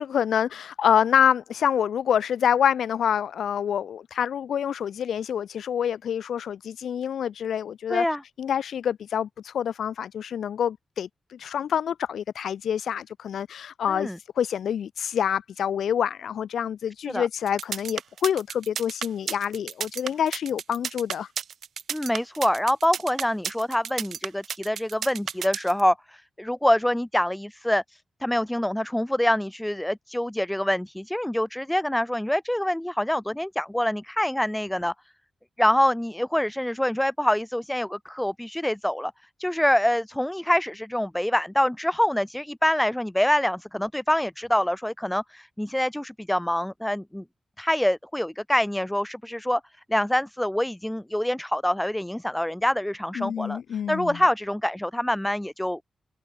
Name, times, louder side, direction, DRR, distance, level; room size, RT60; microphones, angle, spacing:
voice 1, 0.0-8.0 8.4-21.3 53.2-54.2, left 8 dB, 85° left, 3.0 m, -26 dB
voice 2, 7.9-8.2 13.9-14.2 17.1-17.3 21.9-34.9 35.6-39.1 39.4-47.2 47.6-49.6 49.9-55.8, left 1 dB, 5° left, 0.7 m, -25 dB
sound 1, 17.5-25.8, right 8 dB, 70° right, 5.9 m, -32 dB
wide cardioid pair, 135°, 0 cm